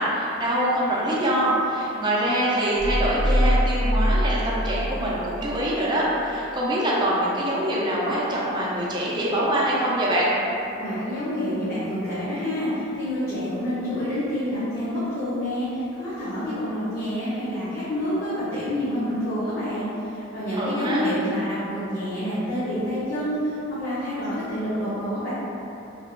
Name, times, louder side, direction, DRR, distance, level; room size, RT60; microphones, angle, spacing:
voice 1, 0.0-10.3 20.5-21.0, right 1 dB, 25° right, -6 dB, 0.5 m, -24 dB
sound 1, 2.8-5.3 5.7-5.8, equal, 80° left, 0.5 m, -23 dB
voice 2, 10.8-25.3, equal, 50° left, -13 dB, 0.8 m, -28 dB
3.4 x 3.3 x 2.4 m, 3.0 s
head